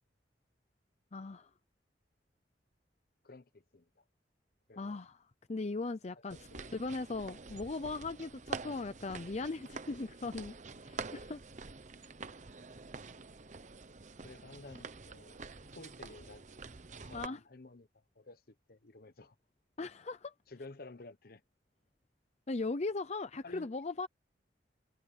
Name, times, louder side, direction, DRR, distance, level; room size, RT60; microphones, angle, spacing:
voice 1, 1.1-1.5 4.8-5.2 5.5-6.4 6.7-10.5 10.8-11.4 17.1-17.4 19.8-20.3 22.5-24.1, left 3 dB, 40° left, 0.6 m, -38 dB
voice 2, 3.2-4.0 4.7-5.0 6.3-6.8 14.2-15.4 15.7-16.4 17.0-19.3 20.5-21.4 23.4-23.7, left 3 dB, 55° left, 1.0 m, -53 dB
sound 1, 6.3-17.3, right 4 dB, 45° right, 0.9 m, -47 dB
head